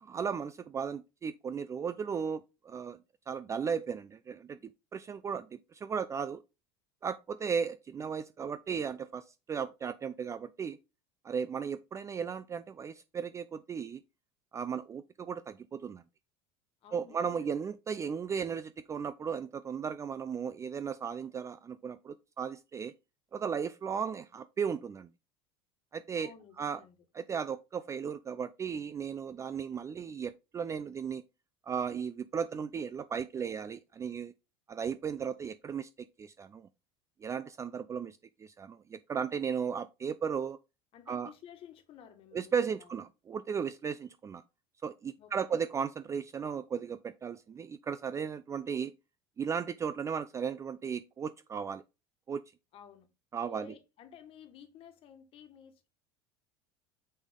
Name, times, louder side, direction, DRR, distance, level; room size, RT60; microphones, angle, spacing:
voice 1, 0.0-3.0 3.3-6.4 7.0-10.8 11.2-14.0 14.5-16.0 16.9-22.9 23.3-25.1 25.9-26.3 26.6-26.8 27.1-31.2 31.6-34.3 34.7-35.9 36.2-36.7 37.2-40.6 41.1-41.3 42.3-44.4 44.8-48.9 49.4-51.8 52.3-52.4 53.3-53.7, right 6 dB, 25° right, 0.4 m, -36 dB
voice 2, 16.8-17.5 26.1-27.0 40.9-42.9 45.2-45.6 52.7-53.1 53.4-55.9, left 8 dB, 50° left, 1.6 m, -53 dB
6.4 x 5.3 x 3.7 m
supercardioid pair, 115°, 13 cm